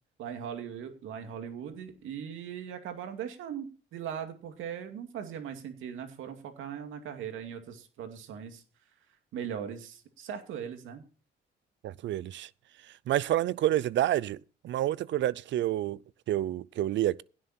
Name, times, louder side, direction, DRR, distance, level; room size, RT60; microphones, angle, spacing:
voice 1, 0.2-8.6 9.3-11.0, right 8 dB, 85° right, 2.4 m, -39 dB
voice 2, 11.8-12.5 13.1-14.4 14.6-16.0 16.3-17.2, right 13 dB, 70° right, 0.5 m, -28 dB
16.5 x 7.6 x 4.3 m
cardioid pair, 90°, 20 cm